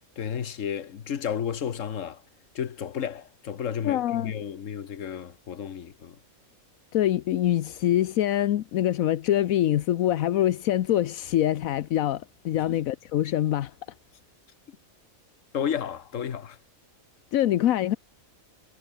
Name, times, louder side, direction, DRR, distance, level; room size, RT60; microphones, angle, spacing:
voice 1, 0.2-2.2 2.5-6.2 12.7-12.8 14.7-14.8 15.5-16.6, left 8 dB, 65° left, 1.5 m, -32 dB
voice 2, 3.8-4.3 6.9-13.7 17.3-18.0, left 12 dB, 80° left, 1.1 m, -24 dB
omnidirectional pair, 1.4 m